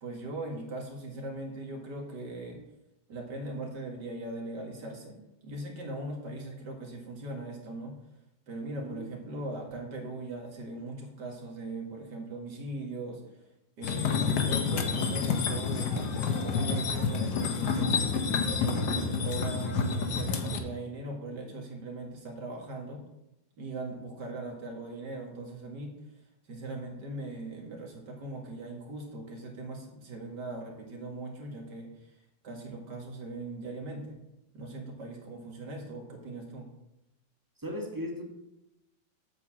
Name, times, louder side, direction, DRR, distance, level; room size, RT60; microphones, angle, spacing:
voice 1, 0.0-2.6 3.1-8.0 8.5-13.4 13.8-18.0 18.5-23.0 23.6-34.2 34.5-36.7, right 2 dB, 75° right, 1 dB, 2.6 m, -40 dB
voice 2, 8.7-9.2 37.6-38.2, equal, 10° right, 1 dB, 1.3 m, -37 dB
sound 1, 13.8-20.6, left 5 dB, 70° left, 1.6 m, -29 dB
8.2 x 4.7 x 7.4 m, 0.90 s
omnidirectional pair, 1.9 m